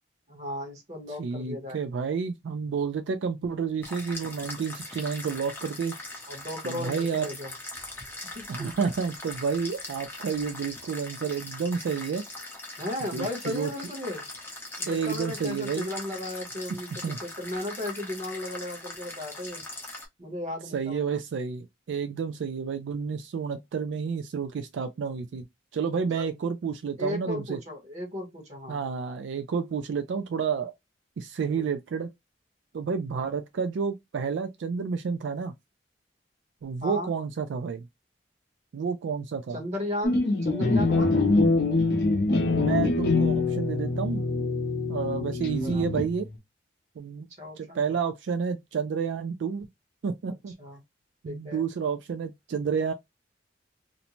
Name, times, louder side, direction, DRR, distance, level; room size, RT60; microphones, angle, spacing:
voice 1, 0.3-1.8 6.3-7.5 8.3-8.7 12.8-14.3 14.8-19.6 20.2-21.2 26.1-26.3 27.0-28.8 31.4-31.7 36.8-37.1 39.5-41.2 45.2-45.8 47.4-47.9 50.6-50.8 51.2-51.6, left 1 dB, 40° right, 1.0 m, -35 dB
voice 2, 1.2-6.0 6.6-7.3 8.5-12.2 13.1-13.7 14.9-15.9 17.0-17.2 20.7-25.5 25.7-27.6 28.7-30.7 31.2-32.1 32.7-35.5 36.6-37.9 38.7-39.6 42.5-44.2 44.9-46.3 47.0-47.3 47.6-49.7 50.0-50.5 51.2-52.9, right 6 dB, 80° right, 0.3 m, -30 dB
sound 1, 3.8-20.1, left 2 dB, 10° left, 0.6 m, -41 dB
sound 2, 40.0-46.3, left 3 dB, 55° left, 0.6 m, -24 dB
2.6 x 2.1 x 2.9 m
head